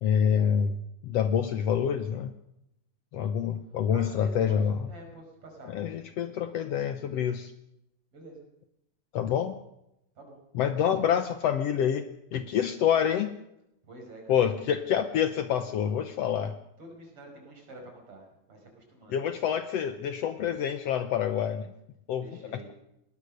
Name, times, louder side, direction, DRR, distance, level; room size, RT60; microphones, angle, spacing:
voice 1, 0.0-2.3 3.1-4.9 5.7-7.5 9.1-9.5 10.5-13.3 14.3-16.5 19.1-21.7 22.1-22.3, left 8 dB, 70° left, 9 dB, 1.7 m, -27 dB
voice 2, 3.9-4.6 4.8-5.8 8.1-8.5 10.2-10.4 13.9-14.4 16.8-19.2 22.2-22.7, right 2 dB, 45° right, 2 dB, 6.5 m, -48 dB
21.5 x 18.5 x 6.6 m, 0.85 s
omnidirectional pair, 3.4 m